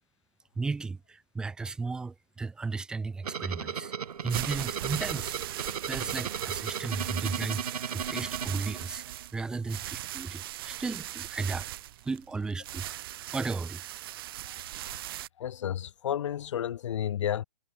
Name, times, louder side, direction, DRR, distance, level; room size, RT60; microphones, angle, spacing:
voice 1, 0.6-3.9 4.2-7.7 7.9-9.0 9.3-11.7 12.0-12.9 13.3-13.8, right 4 dB, 5° right, 0.7 m, -35 dB
sound 1, 3.2-9.3, right 7 dB, 80° right, 1.2 m, -36 dB
sound 2, 4.1-15.3, right 14 dB, 35° right, 1.7 m, -39 dB
voice 2, 15.4-17.4, left 10 dB, 55° left, 0.4 m, -31 dB
hypercardioid pair, 155°, 19 cm